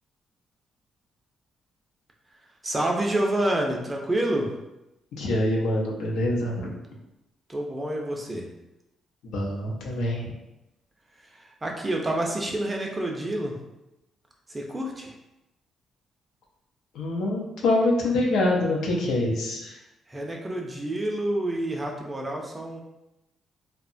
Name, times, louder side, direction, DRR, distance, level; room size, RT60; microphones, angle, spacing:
voice 1, 2.6-4.5 7.5-8.5 11.3-13.5 14.5-15.1 20.1-22.8, right 1 dB, 20° right, 0 dB, 0.5 m, -28 dB
voice 2, 5.1-6.7 9.2-10.3 16.9-19.8, left 1 dB, 85° left, -1 dB, 0.6 m, -25 dB
2.8 x 2.1 x 2.5 m, 0.93 s
cardioid pair, 90°, 0 cm